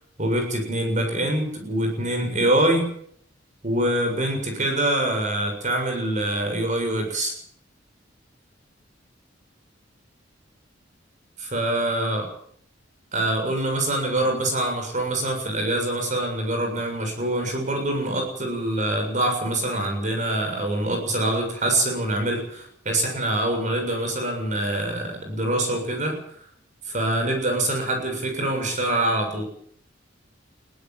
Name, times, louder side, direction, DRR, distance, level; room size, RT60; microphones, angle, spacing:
voice 1, 0.2-2.9 3.6-7.3 11.4-12.3 13.1-26.2 26.9-29.4, right 1 dB, 40° right, 3 dB, 7.0 m, -25 dB
22.5 x 16.5 x 7.8 m, 0.65 s
head